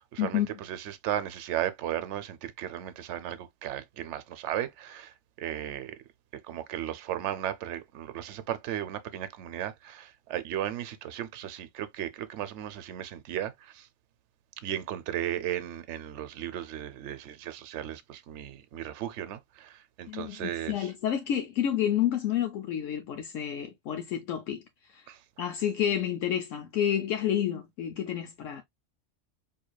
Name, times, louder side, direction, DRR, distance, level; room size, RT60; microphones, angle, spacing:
voice 1, 0.0-6.0 6.4-13.9 14.6-20.9 25.1-25.2, right 11 dB, 65° right, 0.9 m, -35 dB
voice 2, 20.1-24.6 24.9-25.0 25.4-28.6, left 10 dB, 75° left, 1.0 m, -29 dB
4.6 x 2.8 x 2.2 m
omnidirectional pair, 1.4 m